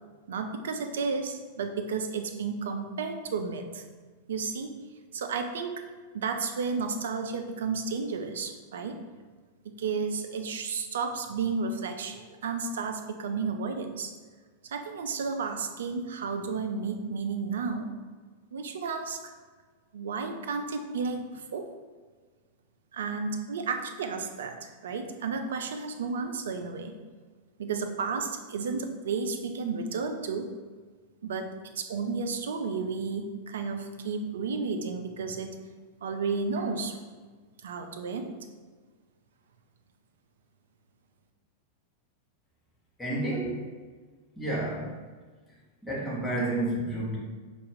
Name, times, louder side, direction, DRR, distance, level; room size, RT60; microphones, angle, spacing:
voice 1, 0.3-3.8 4.3-4.8 5.1-5.8 6.1-9.0 9.6-14.1 14.6-17.9 18.5-19.2 19.9-21.6 22.9-26.9 27.6-30.5 31.2-31.5 31.8-35.6 36.0-37.0 37.6-38.4, right 4 dB, 65° right, 6 dB, 0.4 m, -32 dB
voice 2, 43.0-43.7 44.4-44.9 45.8-47.2, right 1 dB, 10° left, -6 dB, 1.2 m, -30 dB
4.3 x 2.4 x 3.5 m, 1.4 s
figure-of-eight pair, 90°, 0 cm